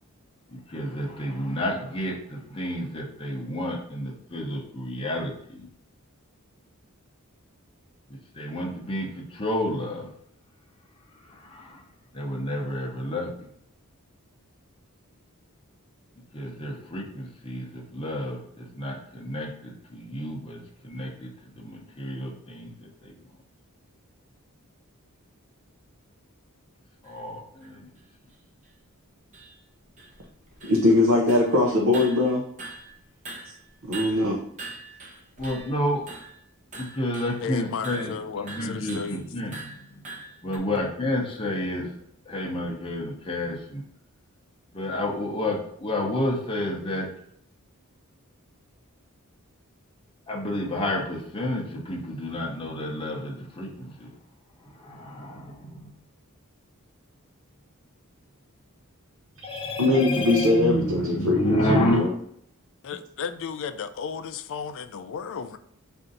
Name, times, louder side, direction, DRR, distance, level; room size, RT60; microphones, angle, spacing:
voice 1, 0.5-5.7 8.3-10.1 11.5-11.8 12.1-13.3 16.3-21.3 21.6-22.7 23.0-23.1 27.0-27.9 35.4-36.0 36.8-39.5 40.4-41.9 42.3-43.8 44.7-47.1 50.3-54.1 54.8-55.9 59.4-62.0, left 1 dB, 25° left, -2 dB, 0.7 m, -30 dB
sound 1, 27.0-27.1 27.6-27.7 28.3-28.4 28.6-28.7 29.3-29.6 30.0-31.0 31.3-31.6 31.9-33.0 33.2-35.8 36.1-36.4 36.7-37.4 37.8-38.1 38.5-39.1 39.5-40.6, right 2 dB, 35° right, 0.8 m, -42 dB
voice 2, 30.6-32.4 33.4-33.5 33.8-34.4 59.8-62.1, left 2 dB, 65° right, -1 dB, 0.7 m, -21 dB
voice 3, 37.4-39.3 62.8-65.6, left 6 dB, 60° left, 11 dB, 0.4 m, -34 dB
4.4 x 2.6 x 3.9 m, 0.67 s
head